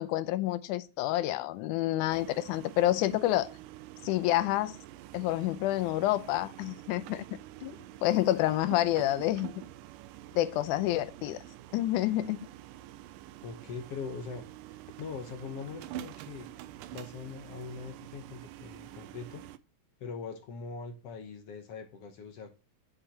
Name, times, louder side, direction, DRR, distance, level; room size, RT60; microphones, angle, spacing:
voice 1, 0.0-3.5 4.0-4.8 5.1-7.2 7.6-7.8 8.0-9.5 10.4-11.4 11.7-12.4, left 15 dB, 80° left, 1.9 m, -28 dB
sound 1, 2.1-19.6, right 13 dB, 90° right, 2.3 m, -47 dB
voice 2, 13.4-16.5 16.9-19.5 20.0-22.5, left 5 dB, 65° left, 1.6 m, -42 dB
9.0 x 7.5 x 2.9 m
omnidirectional pair, 3.9 m